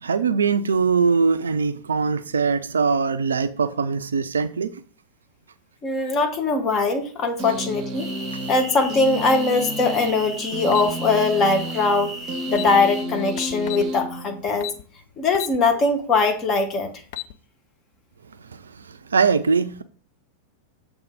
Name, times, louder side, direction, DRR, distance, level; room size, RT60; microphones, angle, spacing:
voice 1, 0.0-4.7 18.5-19.8, right 5 dB, 70° right, 0.4 m, -22 dB
voice 2, 5.8-8.1 8.5-12.2 12.5-14.7 15.2-16.9, left 3 dB, 30° left, 1.1 m, -21 dB
sound 1, 7.4-14.8, equal, 35° right, 0.7 m, -32 dB
sound 2, 8.0-13.0, right 1 dB, 5° left, 3.2 m, -36 dB
sound 3, 10.7-10.9 12.1-12.2 12.5-12.7 13.4-13.9 14.6-14.8 15.3-15.6 16.0-16.1 16.9-17.3, left 17 dB, 50° left, 0.5 m, -32 dB
7.1 x 3.4 x 5.1 m
figure-of-eight pair, 90°, 0 cm